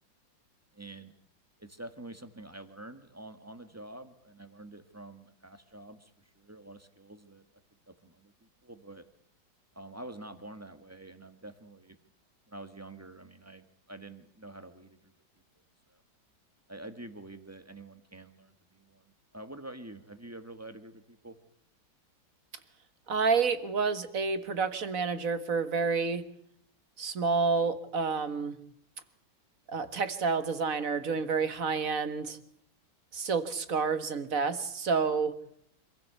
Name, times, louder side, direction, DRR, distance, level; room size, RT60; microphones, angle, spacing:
voice 1, 0.7-1.1 1.6-6.1 6.3-7.4 7.9-8.3 8.6-9.1 9.7-12.0 12.5-15.1 15.9-16.0 16.7-21.4, right 2 dB, 10° right, 9 dB, 1.6 m, -47 dB
voice 2, 23.1-26.3 27.0-28.6 29.7-32.4 33.1-35.4, right 5 dB, 45° right, 12 dB, 1.9 m, -29 dB
26.5 x 15.5 x 8.3 m, 0.70 s
omnidirectional pair, 2.2 m